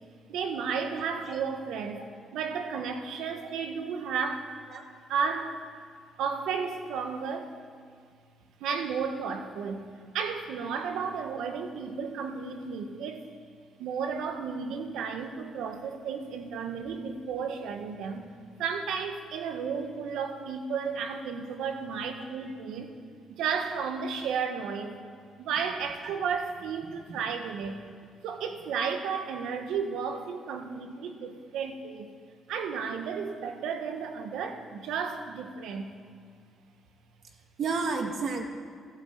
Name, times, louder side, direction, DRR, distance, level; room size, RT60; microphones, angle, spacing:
voice 1, 0.3-2.0 2.3-4.5 5.1-5.6 6.2-7.5 8.6-9.9 10.1-13.3 13.8-18.2 18.6-22.9 23.3-25.0 25.4-27.8 28.2-32.1 32.5-35.9, right 6 dB, 85° right, 6 dB, 1.6 m, -33 dB
voice 2, 1.0-1.4 1.9-2.0 4.7-4.8 26.0-26.1 27.1-27.2 37.6-38.5, right 4 dB, 65° right, 3 dB, 1.8 m, -32 dB
13.0 x 13.0 x 8.4 m, 2.2 s
cardioid pair, 90°, 0 cm